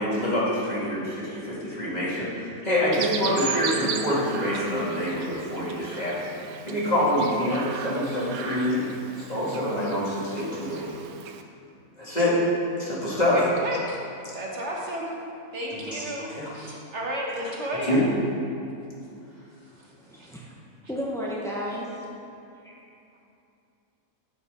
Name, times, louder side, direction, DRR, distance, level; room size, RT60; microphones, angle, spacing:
voice 1, 0.0-6.4 6.7-10.9 12.0-12.4 12.8-13.4 15.9-16.0 16.3-16.5 17.9-18.0, left 1 dB, 30° left, -7 dB, 2.0 m, -26 dB
Chirp tweet, 2.9-11.4, right 7 dB, 75° right, 1.0 m, -37 dB
voice 2, 13.3-14.0 14.3-15.1 15.5-18.0 20.1-20.3, right 1 dB, 55° right, -2 dB, 1.3 m, -32 dB
voice 3, 20.0-20.6 20.9-22.0 22.6-22.7, equal, 5° left, -5 dB, 0.3 m, -33 dB
8.2 x 5.7 x 5.4 m, 2.6 s
omnidirectional pair, 1.6 m